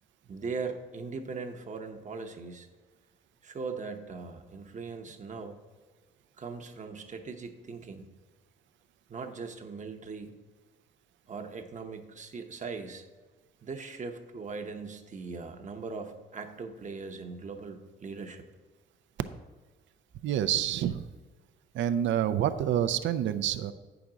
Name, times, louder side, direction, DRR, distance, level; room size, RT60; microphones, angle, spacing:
voice 1, 0.2-2.7 3.4-5.6 6.4-8.0 9.1-10.3 11.3-13.0 13.6-18.4, right 4 dB, 40° right, 5 dB, 0.8 m, -40 dB
voice 2, 20.2-21.1 21.7-23.7, right 10 dB, 70° right, 11 dB, 0.5 m, -27 dB
8.4 x 5.9 x 3.8 m, 1.3 s
cardioid pair, 90°, 20 cm